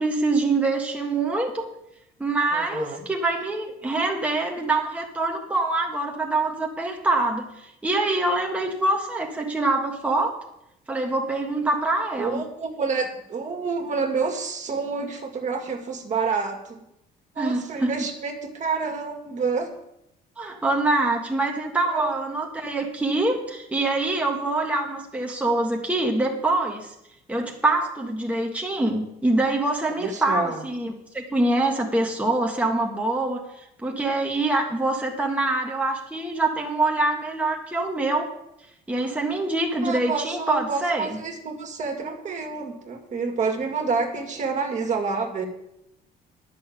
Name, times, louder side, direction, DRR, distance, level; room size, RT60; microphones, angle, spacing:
voice 1, 0.0-1.7 2.2-10.4 10.9-12.4 17.4-17.9 20.4-26.9 27.3-33.4 33.8-38.3 38.9-41.2, right 2 dB, 10° right, 0 dB, 1.6 m, -25 dB
voice 2, 2.5-3.0 12.2-16.9 17.4-19.7 21.9-22.2 30.0-30.6 39.8-45.5, right 4 dB, 45° right, 4 dB, 2.2 m, -28 dB
10.5 x 6.7 x 8.7 m, 0.83 s
cardioid pair, 110°, 17 cm